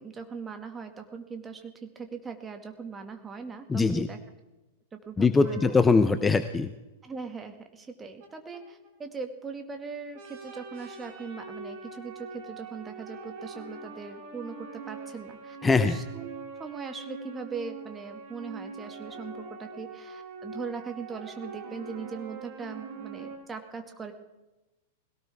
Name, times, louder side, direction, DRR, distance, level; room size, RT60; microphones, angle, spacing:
voice 1, 0.0-4.2 4.9-5.6 7.0-16.3 16.6-24.1, right 5 dB, 15° right, 6 dB, 2.1 m, -40 dB
voice 2, 3.7-4.1 5.2-6.7 15.6-16.0, left 4 dB, 15° left, 11 dB, 0.8 m, -22 dB
sound 1, 5.4-6.3 8.2-8.3 8.5-8.6 8.8-8.9 9.2-9.3 10.1-23.4, right 4 dB, 50° right, 4.5 m, -43 dB
21.0 x 17.5 x 3.6 m, 1.0 s
figure-of-eight pair, 100°, 0 cm